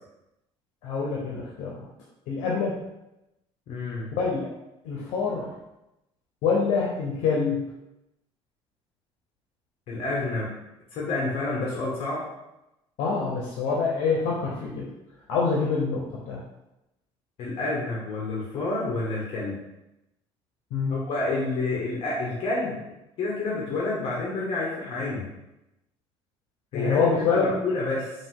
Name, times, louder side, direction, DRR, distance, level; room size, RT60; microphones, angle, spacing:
voice 1, 0.8-1.9 2.3-2.8 4.1-4.4 4.8-5.5 6.4-7.6 13.0-14.8 15.3-16.4 20.7-21.1 26.7-27.5, left 5 dB, 80° left, -3 dB, 0.9 m, -25 dB
voice 2, 3.7-4.1 9.9-10.5 10.9-12.2 17.4-19.6 20.9-22.8 23.2-25.3 26.7-28.1, left 2 dB, 55° left, -5 dB, 1.1 m, -29 dB
5.2 x 2.6 x 3.7 m, 0.91 s
cardioid pair, 165°, 11 cm